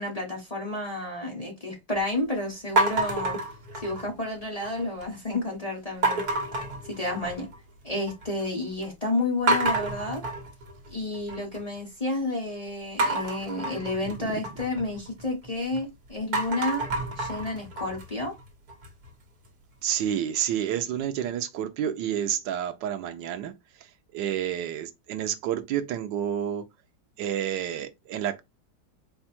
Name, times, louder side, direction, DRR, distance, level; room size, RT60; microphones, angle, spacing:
voice 1, 0.0-3.4 3.8-6.2 6.9-7.5 7.8-10.2 10.9-16.8 17.2-18.3, left 2 dB, 25° left, 1.0 m, -31 dB
sound 1, 2.8-4.2 4.6-5.2 6.0-7.6 7.9-8.5 8.8-8.9 9.5-11.6 13.0-15.8 16.2-19.1, right 2 dB, 60° right, 1.6 m, -29 dB
voice 2, 19.8-23.5 23.8-26.7 27.2-28.4, right 10 dB, 80° right, 1.3 m, -29 dB
4.4 x 2.3 x 4.2 m
omnidirectional pair, 2.0 m